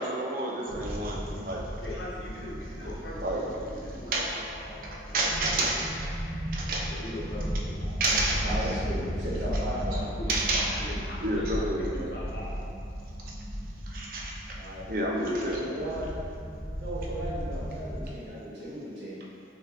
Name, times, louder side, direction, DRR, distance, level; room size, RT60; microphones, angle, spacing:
voice 1, 0.0-1.6 2.8-2.9 3.2-3.4 4.1-4.3 4.8-6.1 6.5-6.9 8.0-8.4 10.3-10.6 11.2-12.1 13.9-14.3 14.9-16.0, right 1 dB, 50° right, -2 dB, 0.5 m, -29 dB
sound 1, 0.7-18.1, equal, 5° left, 0.7 m, -35 dB
voice 2, 1.8-5.6 5.9-6.0 6.9-8.0 9.9-12.8, left 1 dB, 75° left, -6 dB, 0.9 m, -41 dB
voice 3, 8.4-10.1 14.6-14.9 15.4-16.1 16.8-19.2, equal, 80° right, -9 dB, 1.3 m, -36 dB
3.7 x 2.9 x 3.3 m, 2.4 s
head